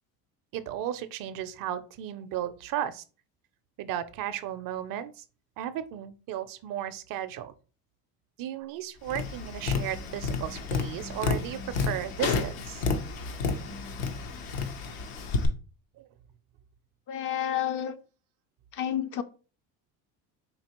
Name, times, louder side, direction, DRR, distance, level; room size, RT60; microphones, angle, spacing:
voice 1, 0.5-3.0 3.8-5.2 5.6-7.5 8.4-12.9 16.0-16.1, right 11 dB, 50° right, 0.5 m, -35 dB
Tap, 9.1-15.5, left 4 dB, 75° left, 0.8 m, -31 dB
voice 2, 17.1-17.9 18.7-19.2, left 10 dB, 45° left, 0.5 m, -30 dB
4.5 x 2.8 x 2.9 m
supercardioid pair, 90°, 44 cm